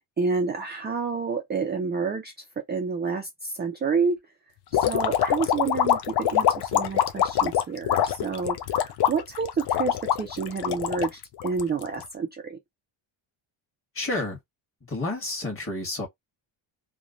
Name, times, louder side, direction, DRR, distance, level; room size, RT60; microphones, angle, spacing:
voice 1, 0.2-2.3 2.7-4.2 4.7-8.6 8.8-12.6, right 5 dB, 25° right, 0.4 m, -29 dB
sound 1, 4.7-12.0, left 10 dB, 55° left, 0.6 m, -24 dB
voice 2, 13.9-14.4 14.9-16.1, left 2 dB, 25° left, 1.4 m, -30 dB
3.1 x 2.2 x 2.4 m
cardioid pair, 140°, 49 cm